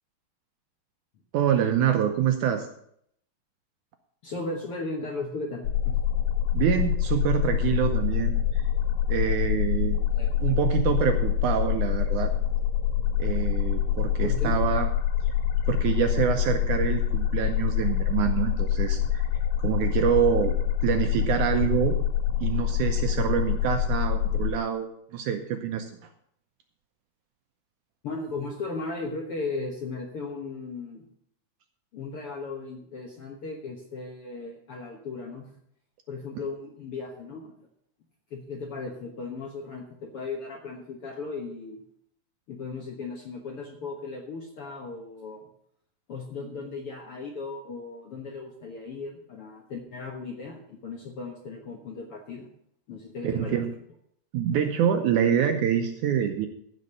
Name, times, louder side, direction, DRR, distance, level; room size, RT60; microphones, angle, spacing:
voice 1, 1.3-2.7 6.5-8.6 9.1-10.0 10.4-12.3 13.2-14.9 15.7-19.2 19.6-20.6 20.8-22.0 22.4-25.9 53.2-53.7 54.3-56.5, right 9 dB, 75° right, 6 dB, 1.9 m, -26 dB
voice 2, 4.2-5.9 10.1-10.5 14.1-14.6 28.0-31.1 31.9-35.5 36.1-37.5 38.3-41.8 42.5-45.5 46.1-52.5 52.9-53.6, left 3 dB, 55° left, 0 dB, 1.6 m, -36 dB
sound 1, 5.6-24.5, left 10 dB, 75° left, 2.7 m, -25 dB
15.0 x 5.4 x 6.5 m, 0.69 s
omnidirectional pair, 4.1 m